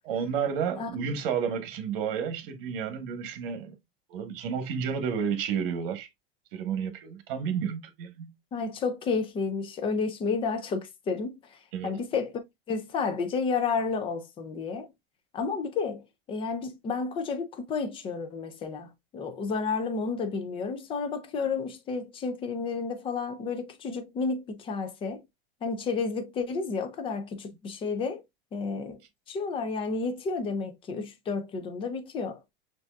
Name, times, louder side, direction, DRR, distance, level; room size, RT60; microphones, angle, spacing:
voice 1, 0.0-3.8 4.1-6.1 6.5-8.3 11.7-11.9, right 7 dB, 60° right, 1.1 m, -31 dB
voice 2, 8.5-11.4 11.8-12.4 12.7-14.9 15.3-16.0 16.3-25.2 25.6-28.2 28.5-29.0 29.3-32.4, left 4 dB, 20° left, 0.5 m, -31 dB
6.1 x 2.7 x 2.3 m
supercardioid pair, 150°, 30 cm